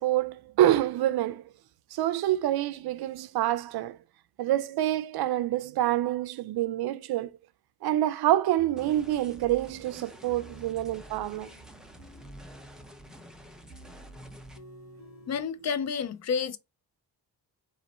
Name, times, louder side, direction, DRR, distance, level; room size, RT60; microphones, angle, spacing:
voice 1, 0.0-1.4 1.9-4.0 4.4-7.3 7.8-11.5, right 13 dB, 75° right, 0.5 m, -27 dB
sound 1, 8.5-15.4, equal, 65° left, 1.8 m, -51 dB
sound 2, 8.8-14.6, right 1 dB, ahead, 0.5 m, -50 dB
voice 2, 15.3-16.6, left 6 dB, 45° left, 0.5 m, -30 dB
4.1 x 3.0 x 4.1 m
wide cardioid pair, 145°, 38 cm